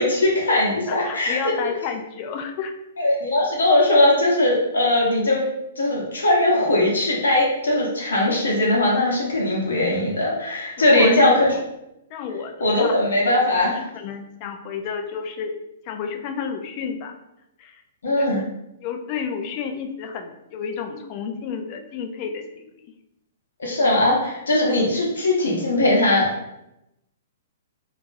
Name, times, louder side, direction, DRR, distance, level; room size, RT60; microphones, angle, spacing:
voice 1, 0.0-1.4 3.0-5.4 5.8-11.5 12.6-13.8 18.0-18.4 23.6-26.3, left 1 dB, 75° left, -4 dB, 0.9 m, -20 dB
voice 2, 0.9-2.7 10.8-11.4 12.1-12.9 13.3-15.6 15.8-17.1 17.6-17.8 18.2-18.4 18.8-22.8, left 6 dB, 40° left, 5 dB, 0.4 m, -31 dB
2.8 x 2.4 x 2.6 m, 0.86 s
hypercardioid pair, 120°, 0 cm